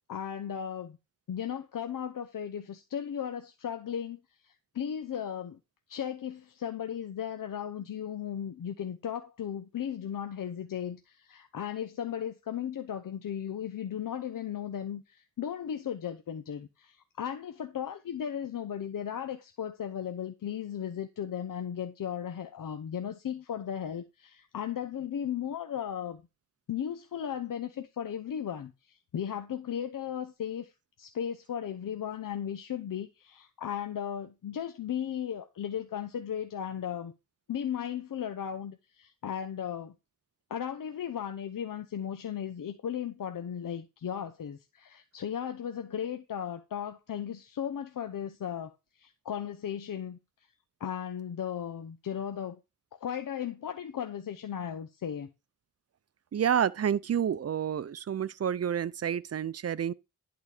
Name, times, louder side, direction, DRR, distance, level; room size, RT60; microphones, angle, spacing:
voice 1, 0.1-1.0 1.3-5.6 5.9-26.2 26.7-30.7 31.0-37.1 37.5-39.9 40.5-50.2 50.8-52.6 53.0-55.3, left 9 dB, 85° left, 0.8 m, -36 dB
voice 2, 56.3-59.9, right 9 dB, 50° right, 0.6 m, -29 dB
11.0 x 4.0 x 4.9 m
cardioid pair, 75°, 32 cm